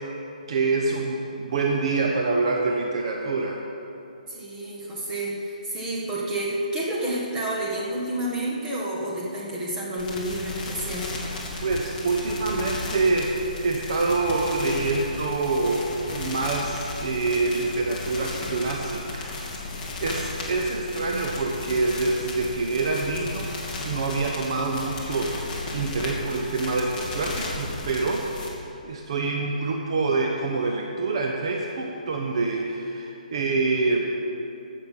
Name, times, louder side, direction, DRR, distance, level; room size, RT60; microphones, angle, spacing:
voice 1, 0.5-3.6 11.6-19.4 20.0-34.1, right 3 dB, 40° right, 1 dB, 0.9 m, -26 dB
voice 2, 4.3-11.1, right 1 dB, 10° right, -5 dB, 1.6 m, -29 dB
sound 1, 10.0-28.5, left 2 dB, 15° left, 1.6 m, -35 dB
16.0 x 6.6 x 5.9 m, 2.8 s
hypercardioid pair, 170°, 5 cm